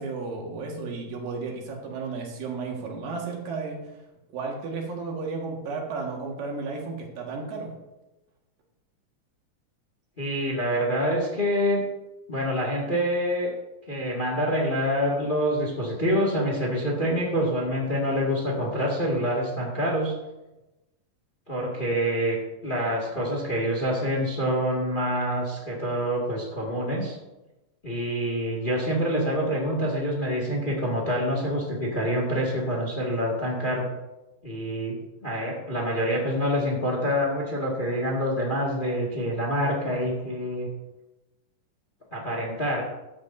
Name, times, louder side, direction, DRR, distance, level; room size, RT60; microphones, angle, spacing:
voice 1, 0.0-3.8 4.3-7.7, right 4 dB, 80° right, -1 dB, 3.5 m, -33 dB
voice 2, 10.2-11.8 12.3-13.5 13.9-20.1 21.5-22.4 22.6-27.1 27.8-33.8 34.4-35.0 35.2-40.7 42.1-42.8, equal, 20° left, -2 dB, 1.4 m, -26 dB
14.5 x 10.0 x 2.7 m, 1.0 s
omnidirectional pair, 4.0 m